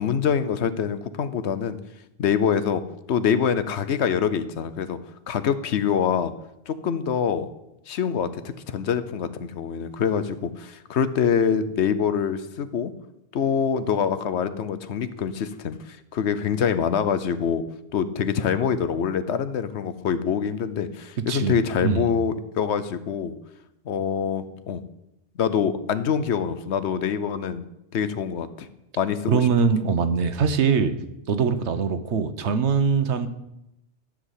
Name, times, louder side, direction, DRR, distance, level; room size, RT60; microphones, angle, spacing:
voice 1, 0.0-1.8 2.2-2.8 3.1-5.0 5.3-6.3 6.7-7.5 7.9-8.4 8.7-12.9 13.3-17.6 17.9-23.3 23.8-24.8 25.4-27.6 27.9-28.7 29.0-29.5, left 7 dB, 75° left, 13 dB, 1.0 m, -25 dB
voice 2, 21.3-22.0 29.3-30.9 31.3-33.3, right 6 dB, 75° right, 10 dB, 1.2 m, -22 dB
13.0 x 5.0 x 8.2 m, 0.86 s
omnidirectional pair, 1.2 m